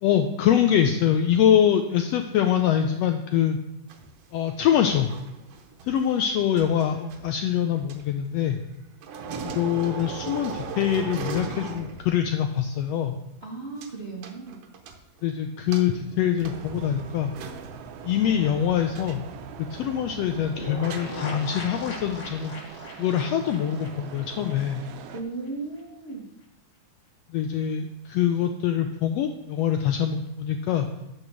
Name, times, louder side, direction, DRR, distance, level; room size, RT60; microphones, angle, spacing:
voice 1, 0.0-3.6 4.3-5.1 5.8-8.6 9.4-13.1 15.2-17.3 18.0-19.2 19.6-22.5 23.0-24.8 27.3-30.9, left 9 dB, 85° left, 6 dB, 1.5 m, -24 dB
sound 1, 3.9-8.8 9.0-12.4 12.6-12.7 13.8-13.9 14.2-15.2 15.7-22.2, right 5 dB, 65° right, 1.8 m, -39 dB
voice 2, 13.4-14.6 25.1-26.2, right 3 dB, 50° right, -3 dB, 0.7 m, -36 dB
sound 2, 16.5-25.2, right 8 dB, 85° right, 2.1 m, -43 dB
sound 3, 20.6-25.2 25.4-25.5 25.8-25.9, left 2 dB, 55° left, 0.8 m, -40 dB
9.5 x 4.9 x 6.3 m, 0.90 s
omnidirectional pair, 3.5 m